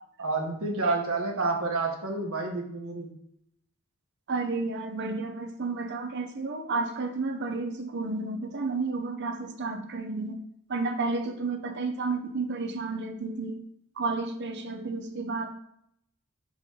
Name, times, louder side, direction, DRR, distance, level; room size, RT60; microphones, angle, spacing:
voice 1, 0.2-3.1, right 3 dB, 80° right, 1 dB, 1.4 m, -29 dB
voice 2, 4.3-10.4 10.7-13.6 14.0-15.5, right 3 dB, 55° right, 6 dB, 0.8 m, -31 dB
5.0 x 4.0 x 5.5 m, 0.75 s
head